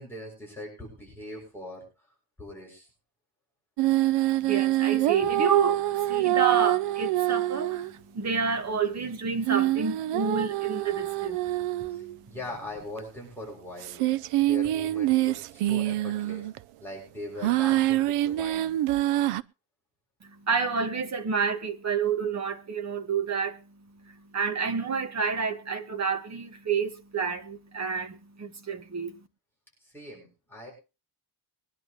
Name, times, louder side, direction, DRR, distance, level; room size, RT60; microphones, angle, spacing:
voice 1, 0.0-1.8 2.4-2.9 11.9-14.0 14.4-16.5 16.8-18.7 29.8-30.7, left 1 dB, 5° left, 6.8 m, -41 dB
sound 1, 3.8-7.9 9.4-12.1 13.0-13.1 13.8-16.6 17.4-19.4, right 15 dB, 90° right, 0.7 m, -25 dB
voice 2, 4.3-11.7 20.2-23.6 24.0-29.1, right 5 dB, 30° right, 1.9 m, -29 dB
22.5 x 11.0 x 3.1 m
cardioid pair, 145°, 50 cm